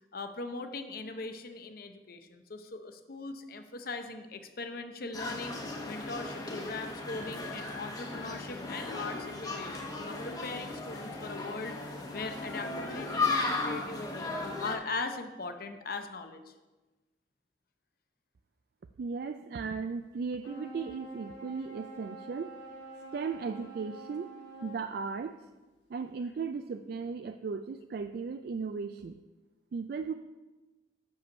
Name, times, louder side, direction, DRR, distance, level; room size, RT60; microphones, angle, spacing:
voice 1, 0.1-5.6 5.9-14.3 14.6-16.5, left 3 dB, 55° left, 7 dB, 0.7 m, -40 dB
sound 1, 5.1-14.8, left 3 dB, 20° left, 0.9 m, -36 dB
voice 2, 19.0-22.5 23.1-24.3 24.6-25.4 25.9-29.2 29.7-30.1, right 5 dB, 60° right, 8 dB, 0.3 m, -36 dB
sound 2, 20.4-24.9, right 2 dB, 90° left, 1.2 m, -47 dB
6.8 x 5.4 x 6.1 m, 1.2 s
head